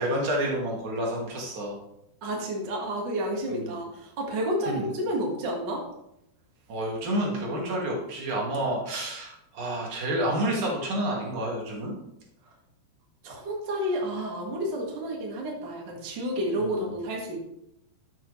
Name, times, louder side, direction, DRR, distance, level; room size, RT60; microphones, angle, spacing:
voice 1, 0.0-1.7 3.5-3.8 4.7-4.9 6.7-12.0 16.6-16.9, right 1 dB, 50° right, -2 dB, 2.8 m, -29 dB
voice 2, 2.2-5.8 13.2-17.4, equal, 80° right, -1 dB, 0.9 m, -30 dB
12.5 x 8.0 x 3.2 m, 0.85 s
omnidirectional pair, 5.3 m